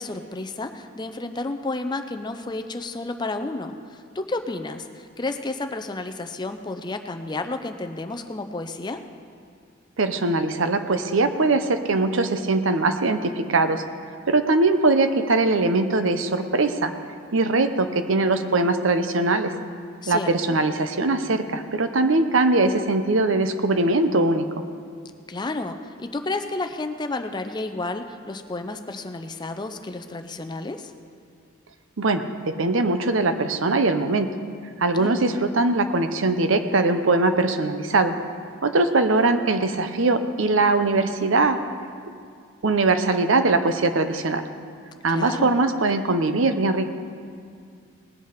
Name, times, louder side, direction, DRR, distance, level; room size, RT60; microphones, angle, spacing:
voice 1, 0.0-9.0 20.0-20.6 25.3-30.9 34.9-35.4 45.1-45.6, left 2 dB, 20° left, 6 dB, 0.5 m, -31 dB
voice 2, 10.0-13.8 14.3-16.9 17.3-19.5 20.1-24.5 32.0-34.3 34.8-38.1 38.6-41.6 42.6-44.5 45.0-46.9, right 3 dB, 65° right, 9 dB, 0.7 m, -21 dB
19.5 x 8.2 x 5.1 m, 2.2 s
head